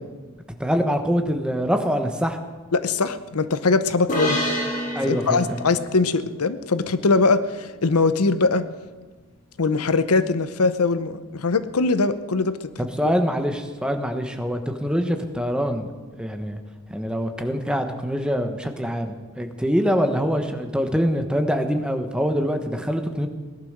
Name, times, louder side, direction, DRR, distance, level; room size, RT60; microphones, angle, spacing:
voice 1, 0.6-2.4 4.9-5.5 12.8-15.9 16.2-16.6 16.9-23.3, equal, 5° right, 6 dB, 1.1 m, -24 dB
voice 2, 2.7-4.4 5.1-8.7 9.6-12.6, left 3 dB, 80° left, 13 dB, 0.8 m, -21 dB
sound 1, 4.1-7.6, equal, 35° left, 3.8 m, -29 dB
18.0 x 11.5 x 6.6 m, 1.3 s
head